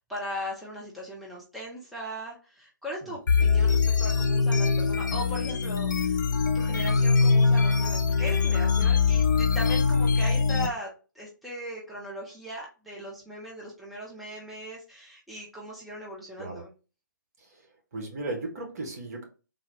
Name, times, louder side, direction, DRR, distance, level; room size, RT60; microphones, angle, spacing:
voice 1, 0.0-6.2 6.5-10.9 11.1-16.7, equal, ahead, -5 dB, 0.8 m, -39 dB
voice 2, 3.0-3.4 16.4-16.6 17.9-19.2, right 2 dB, 50° right, 2 dB, 1.3 m, -36 dB
sound 1, 3.3-10.7, left 5 dB, 65° left, 0.6 m, -23 dB
3.8 x 2.4 x 3.2 m, 0.33 s
figure-of-eight pair, 135°, 11 cm